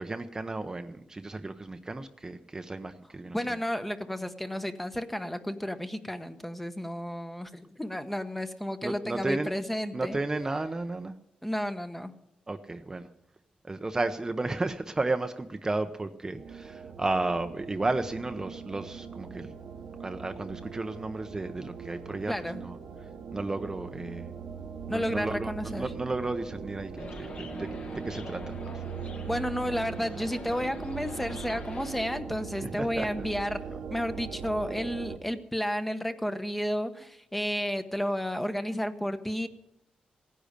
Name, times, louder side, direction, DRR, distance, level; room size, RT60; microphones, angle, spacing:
voice 1, 0.0-3.6 8.8-9.5 9.9-11.1 12.5-13.1 13.6-19.5 20.0-24.3 24.9-28.8 32.6-33.3, right 2 dB, 20° right, 7 dB, 0.7 m, -33 dB
voice 2, 3.3-10.2 11.4-12.1 22.3-22.6 24.9-25.8 29.2-39.5, equal, 5° left, 8 dB, 1.0 m, -32 dB
sound 1, 16.4-35.2, right 6 dB, 75° right, 1.3 m, -41 dB
sound 2, 27.0-32.0, left 3 dB, 55° left, 1.9 m, -44 dB
16.5 x 10.0 x 6.6 m, 0.82 s
cardioid pair, 105°, 3 cm